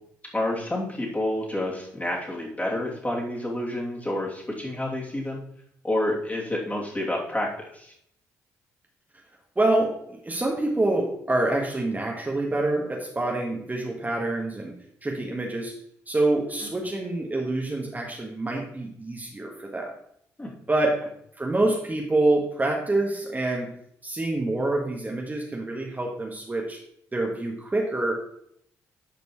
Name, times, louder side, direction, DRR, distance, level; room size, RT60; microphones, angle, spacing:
voice 1, 0.3-5.4 5.8-7.9 20.4-20.5, left 1 dB, 20° left, -3 dB, 2.9 m, -29 dB
voice 2, 9.5-14.7 15.0-15.7 16.1-19.9 20.7-21.0 21.4-23.7 24.0-26.8 27.1-28.1, right 2 dB, 20° right, -1 dB, 1.6 m, -26 dB
11.0 x 5.2 x 3.2 m, 0.70 s
hypercardioid pair, 45°, 8 cm